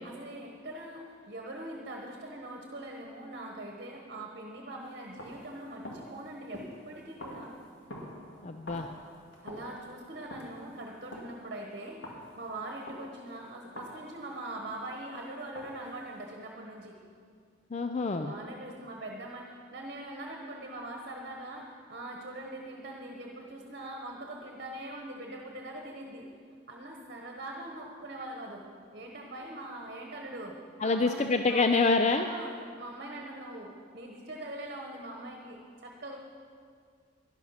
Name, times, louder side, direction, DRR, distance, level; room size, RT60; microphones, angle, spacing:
voice 1, 0.0-7.5 9.4-12.0 12.4-17.0 18.1-26.3 26.7-28.6 28.9-31.7 32.1-36.2, right 1 dB, 50° right, 1 dB, 1.2 m, -42 dB
sound 1, 4.8-15.0 15.6-16.3, equal, 70° left, 2.3 m, -48 dB
voice 2, 8.4-8.9 17.7-18.3 30.8-32.3, left 3 dB, 35° left, 7 dB, 0.4 m, -26 dB
12.0 x 11.5 x 5.8 m, 2.2 s
head